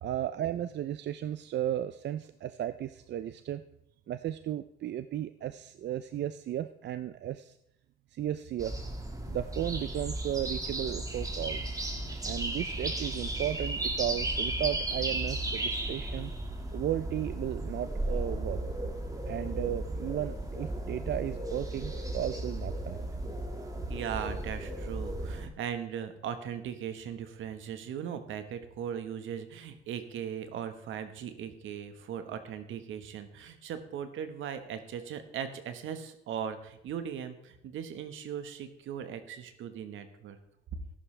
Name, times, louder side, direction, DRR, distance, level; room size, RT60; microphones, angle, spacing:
voice 1, 0.0-3.6 4.1-7.6 8.1-8.8 9.3-11.8 12.2-16.3 16.7-18.6 19.3-23.0, right 11 dB, 60° right, 12 dB, 0.5 m, -34 dB
sound 1, 8.6-25.5, right 1 dB, 15° right, 1.9 m, -35 dB
voice 2, 23.9-40.4, right 8 dB, 80° right, 9 dB, 1.4 m, -38 dB
14.0 x 11.0 x 3.3 m, 0.82 s
cardioid pair, 90°, 20 cm